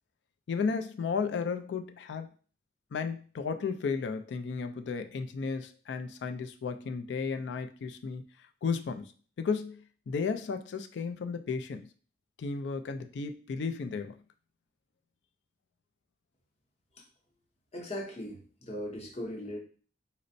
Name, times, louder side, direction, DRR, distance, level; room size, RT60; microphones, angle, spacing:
voice 1, 0.5-2.3 2.9-8.2 8.6-9.1 9.4-11.9 12.4-14.2, left 5 dB, 70° left, 8 dB, 0.3 m, -34 dB
voice 2, 17.7-19.6, left 1 dB, 35° left, 0 dB, 0.7 m, -38 dB
4.1 x 2.0 x 2.6 m, 0.40 s
head